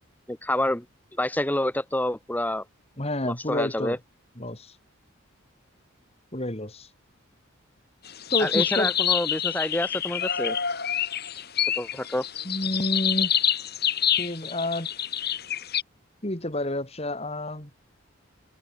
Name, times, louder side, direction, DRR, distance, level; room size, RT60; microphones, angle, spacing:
voice 1, 0.3-0.8 1.2-2.6 3.2-4.0 8.4-10.6 11.8-12.2, left 1 dB, 10° left, 1.3 m, -27 dB
voice 2, 3.0-4.0 4.4-4.7 6.3-6.9 8.3-8.9 12.4-13.3 14.2-14.9 16.2-17.7, left 1 dB, 30° left, 3.1 m, -29 dB
sound 1, 8.1-15.8, left 9 dB, 50° left, 5.3 m, -27 dB
head